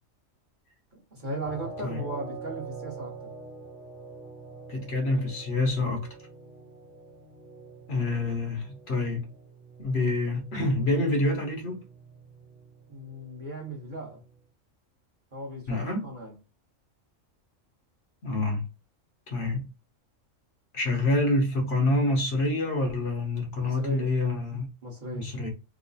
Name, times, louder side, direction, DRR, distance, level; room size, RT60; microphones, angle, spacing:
voice 1, 0.9-3.3 12.9-14.2 15.3-16.3 23.6-24.1 24.8-25.3, right 1 dB, 40° right, 1.0 m, -37 dB
sound 1, 1.4-14.4, right 3 dB, 65° right, 1.0 m, -45 dB
voice 2, 4.7-6.1 7.9-9.3 9.8-11.8 15.7-16.1 18.2-18.6 19.3-19.7 20.7-24.7 25.1-25.5, left 2 dB, 55° left, 1.1 m, -27 dB
3.0 x 2.0 x 3.8 m
omnidirectional pair, 1.4 m